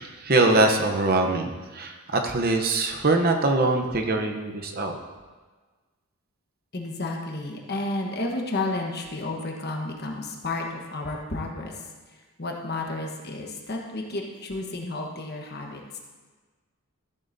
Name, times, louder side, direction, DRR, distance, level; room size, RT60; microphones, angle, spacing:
voice 1, 0.0-5.0, right 2 dB, 45° right, 5 dB, 0.8 m, -23 dB
voice 2, 6.7-11.8 12.1-16.0, left 2 dB, 45° left, 1 dB, 1.2 m, -32 dB
14.0 x 7.7 x 2.7 m, 1.4 s
head